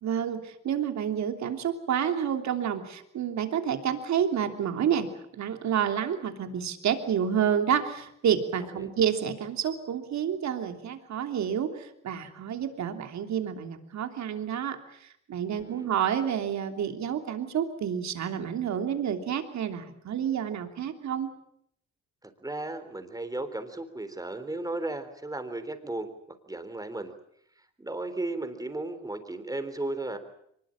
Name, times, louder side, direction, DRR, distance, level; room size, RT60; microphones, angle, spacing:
voice 1, 0.0-5.1 5.3-14.8 15.3-21.3, right 8 dB, 65° right, 6 dB, 3.1 m, -29 dB
voice 2, 8.6-8.9 15.5-15.9 22.2-26.1 26.5-27.1 27.8-30.2, right 2 dB, 10° right, 9 dB, 3.7 m, -35 dB
23.5 x 20.5 x 8.8 m, 0.71 s
cardioid pair, 90°, 30 cm